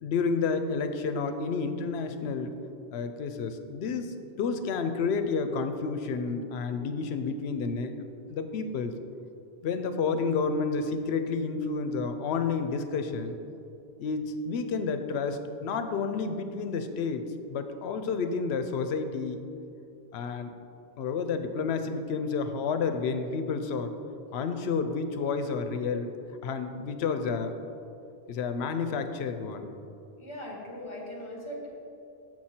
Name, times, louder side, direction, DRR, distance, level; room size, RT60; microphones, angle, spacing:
voice 1, 0.0-2.5 2.9-9.0 9.6-13.4 14.0-19.5 20.1-20.5 21.0-23.9 24.3-26.1 26.4-27.6 28.3-29.7, left 5 dB, 80° left, 8 dB, 0.8 m, -30 dB
voice 2, 30.2-31.7, left 1 dB, 30° left, -2 dB, 1.3 m, -39 dB
6.2 x 6.2 x 4.3 m, 2.7 s
omnidirectional pair, 1.1 m